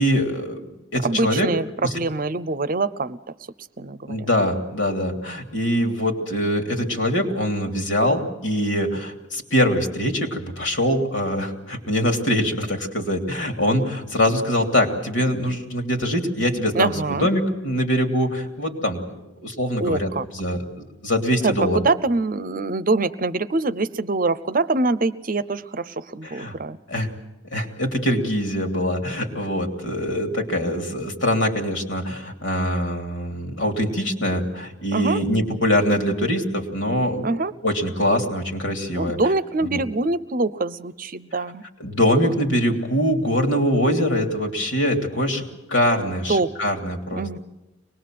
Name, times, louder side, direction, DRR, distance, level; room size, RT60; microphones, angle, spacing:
voice 1, 0.0-1.5 1.8-2.0 4.1-21.9 26.2-26.5 26.9-27.1 27.5-37.3 37.6-39.2 39.6-39.8 41.8-47.3, equal, 75° left, 3 dB, 3.1 m, -23 dB
voice 2, 1.0-3.2 3.8-4.2 16.7-17.3 19.8-20.2 21.4-26.8 34.9-35.2 37.2-37.5 39.0-41.6 46.3-46.5 47.1-47.4, right 3 dB, 45° right, 14 dB, 0.7 m, -24 dB
24.0 x 20.5 x 7.7 m, 0.93 s
head